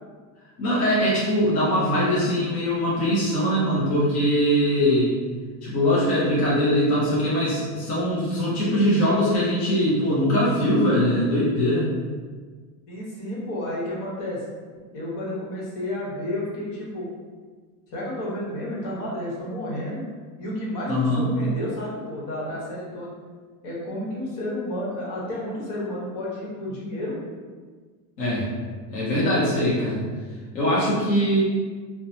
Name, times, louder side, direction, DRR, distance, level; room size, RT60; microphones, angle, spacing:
voice 1, 0.6-5.1 5.6-11.9 20.9-21.3 28.2-28.5 28.9-30.1 30.5-31.4, equal, 20° left, -8 dB, 0.3 m, -22 dB
voice 2, 12.9-14.4 14.9-17.1 17.9-20.1 20.4-23.1 23.6-27.2, left 1 dB, 40° left, -5 dB, 1.0 m, -31 dB
2.9 x 2.0 x 2.6 m, 1.5 s
supercardioid pair, 130°, 46 cm